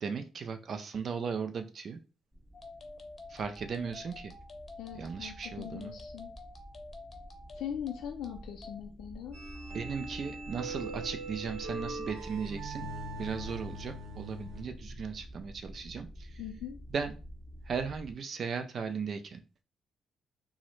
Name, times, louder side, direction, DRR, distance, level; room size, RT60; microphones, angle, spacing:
voice 1, 0.0-2.0 3.3-4.3 5.0-5.9 9.7-12.9 13.2-16.4 16.9-17.1 17.7-19.4, right 6 dB, 55° right, 8 dB, 0.3 m, -37 dB
sound 1, 2.3-18.1, equal, 10° right, 0.8 m, -48 dB
sound 2, 2.5-8.8, left 3 dB, 35° left, 0.7 m, -49 dB
voice 2, 4.8-6.3 7.5-9.4 16.4-16.8, left 9 dB, 85° left, 0 dB, 0.4 m, -41 dB
sound 3, 9.3-14.6, right 2 dB, 70° right, 1.0 m, -41 dB
3.5 x 2.0 x 3.1 m, 0.33 s
cardioid pair, 90°, 0 cm